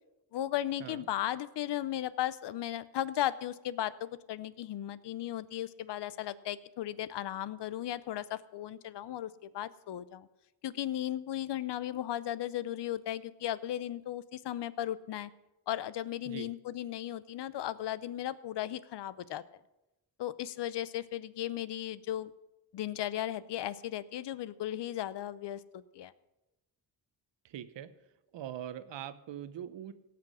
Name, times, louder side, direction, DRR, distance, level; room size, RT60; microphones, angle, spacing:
voice 1, 0.3-10.3 10.6-15.3 15.7-19.4 20.2-22.3 22.7-26.1, left 12 dB, 70° left, 17 dB, 0.6 m, -36 dB
voice 2, 27.4-27.9 28.3-29.9, right 10 dB, 80° right, 13 dB, 0.8 m, -42 dB
17.0 x 6.0 x 6.2 m, 0.97 s
cardioid pair, 85°, 43 cm